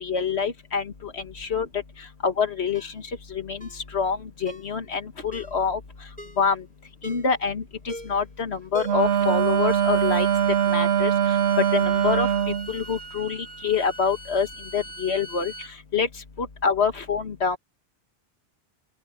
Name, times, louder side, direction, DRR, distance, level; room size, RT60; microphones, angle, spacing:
voice 1, 0.0-1.7 2.2-2.9 3.3-5.8 6.4-6.6 7.0-10.3 10.7-11.1 11.7-12.3 12.7-14.5 14.7-15.5 15.9-16.1 16.4-17.6, left 5 dB, 90° left, 1.9 m, -26 dB
Ringtone, 2.7-3.0 3.6-3.8 4.5-4.7 5.3-5.6 6.2-6.5 7.0-7.4 7.9-8.3 8.7-9.2 9.5-9.6, left 1 dB, 5° left, 3.1 m, -40 dB
Wind instrument woodwind instrument, 8.8-12.7, right 10 dB, 85° right, 0.9 m, -22 dB
Bowed string instrument, 9.0-15.7, right 1 dB, 20° right, 1.4 m, -41 dB
open air
omnidirectional pair, 1.1 m